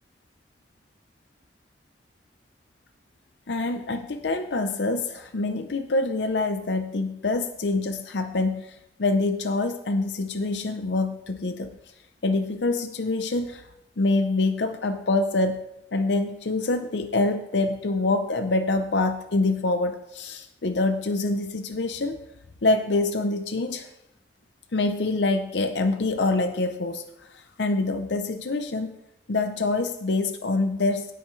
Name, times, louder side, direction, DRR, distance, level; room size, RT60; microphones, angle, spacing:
voice 1, 3.5-11.8 12.2-13.7 14.0-15.6 15.9-22.2 22.6-23.9 24.7-27.0 27.3-29.0 29.3-31.1, left 2 dB, 75° left, 8 dB, 0.7 m, -25 dB
17.5 x 7.8 x 3.2 m, 0.86 s
head